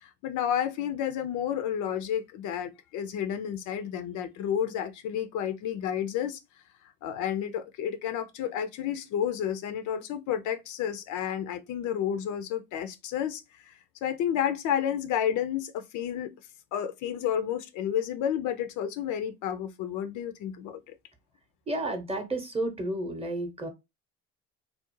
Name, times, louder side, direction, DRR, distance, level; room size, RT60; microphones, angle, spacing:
voice 1, 0.0-6.4 7.0-13.7 14.0-16.3 16.7-21.0, left 9 dB, 55° left, 0.5 m, -31 dB
voice 2, 21.7-23.7, right 1 dB, 15° right, 0.8 m, -31 dB
2.4 x 2.0 x 3.0 m
hypercardioid pair, 65°, 36 cm